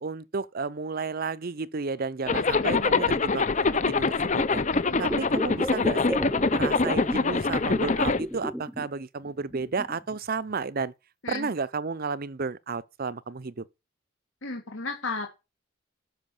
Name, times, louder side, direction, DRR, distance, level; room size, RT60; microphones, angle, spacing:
voice 1, 0.0-3.6 3.9-4.6 5.0-6.2 6.5-10.9 11.3-13.6, right 4 dB, 45° right, 0.6 m, -32 dB
voice 2, 2.3-3.0 4.7-5.6 11.2-11.5 14.4-15.3, left 3 dB, 70° left, 2.1 m, -36 dB
Zipper (clothing), 2.3-8.2, left 4 dB, 35° left, 0.7 m, -24 dB
sound 1, 5.0-7.2 7.5-8.9 9.2-10.2 10.8-10.9, equal, ahead, 0.7 m, -34 dB
12.0 x 5.8 x 7.1 m
head